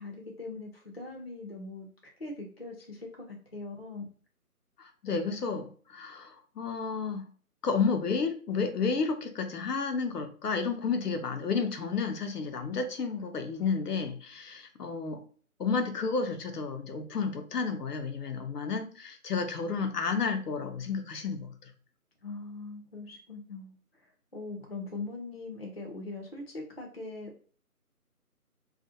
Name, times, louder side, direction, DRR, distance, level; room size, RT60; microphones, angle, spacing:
voice 1, 0.0-4.0 22.2-23.7 24.3-27.5, left 3 dB, 45° left, -1 dB, 0.4 m, -41 dB
voice 2, 4.8-7.3 7.6-15.2 15.6-21.7, left 5 dB, 80° left, 5 dB, 0.7 m, -31 dB
2.4 x 2.0 x 2.6 m, 0.42 s
figure-of-eight pair, 170°, 45 cm